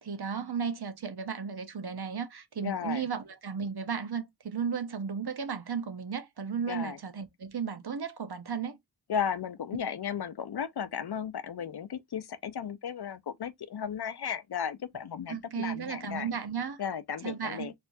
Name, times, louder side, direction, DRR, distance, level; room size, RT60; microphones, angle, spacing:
voice 1, 0.0-8.8 15.3-16.8 17.2-17.7, right 6 dB, 60° right, 0.8 m, -34 dB
voice 2, 2.6-3.1 6.7-7.0 9.1-16.3 16.8-17.7, left 8 dB, 60° left, 0.5 m, -35 dB
4.4 x 2.5 x 2.6 m
wide cardioid pair, 50°, 44 cm